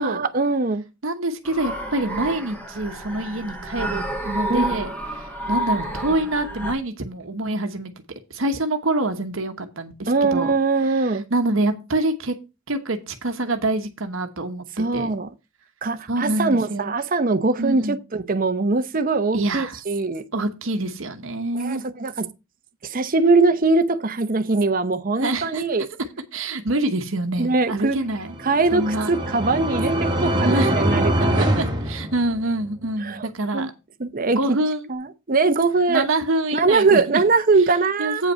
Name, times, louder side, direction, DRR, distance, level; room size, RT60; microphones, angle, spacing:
voice 1, 0.0-0.8 4.5-4.6 10.1-11.2 14.8-15.3 15.8-20.3 21.5-22.3 22.8-25.9 27.4-28.0 28.4-31.6 33.0-33.3 33.5-33.7 34.0-34.6 34.9-36.1 36.5-38.2, right 3 dB, 40° right, 0.8 m, -21 dB
voice 2, 1.0-7.9 8.3-10.5 10.8-10.9 11.3-12.3 12.7-15.1 16.1-16.9 17.6-18.0 19.3-19.8 20.3-21.8 25.2-25.6 26.3-28.3 28.7-29.2 30.4-30.8 31.3-33.7 34.2-34.9 35.9-37.2 38.0-38.3, right 2 dB, 65° right, 1.1 m, -26 dB
sound 1, 1.5-6.7, equal, 5° left, 1.8 m, -29 dB
sound 2, 28.1-32.7, right 1 dB, 20° right, 1.6 m, -23 dB
8.6 x 5.4 x 5.5 m
head